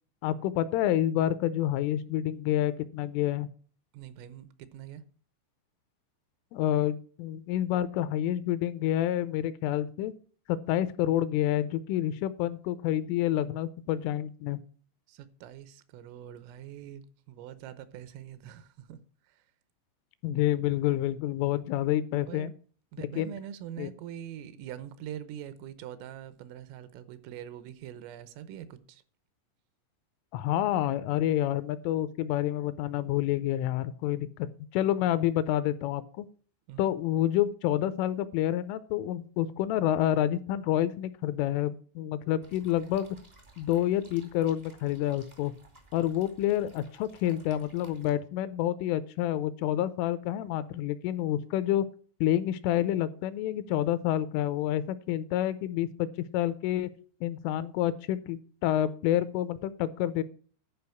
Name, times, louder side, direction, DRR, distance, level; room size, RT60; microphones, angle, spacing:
voice 1, 0.2-3.5 6.5-10.1 10.5-14.6 20.2-22.5 23.2-23.3 23.8-23.9 30.3-34.5 34.7-36.3 36.8-43.2 43.6-45.5 45.9-51.9 52.2-56.1 56.3-56.9 57.2-60.2, left 12 dB, 85° left, 3.0 m, -28 dB
voice 2, 3.9-5.0 15.1-19.0 19.3-19.4 22.3-22.5 22.9-29.0 36.7-36.9, right 10 dB, 85° right, 3.5 m, -44 dB
sound 1, 42.4-48.1, right 2 dB, 65° right, 0.4 m, -57 dB
11.5 x 5.0 x 7.0 m
omnidirectional pair, 5.8 m